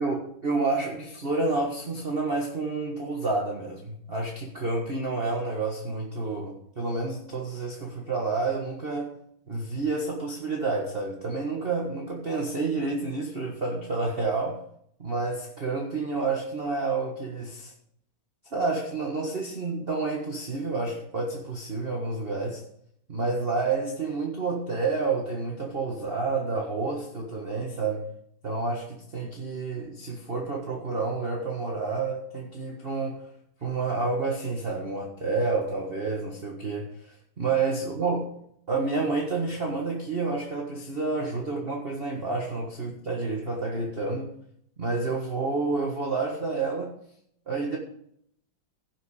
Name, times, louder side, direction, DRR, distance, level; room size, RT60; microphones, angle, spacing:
voice 1, 0.0-9.1 9.5-14.6 15.0-17.7 18.5-22.6 23.1-28.1 28.4-33.2 33.6-38.2 38.7-44.3 44.8-46.9 47.5-47.8, right 3 dB, 30° right, 1.5 m, -29 dB
16.0 x 6.5 x 4.9 m
omnidirectional pair, 2.3 m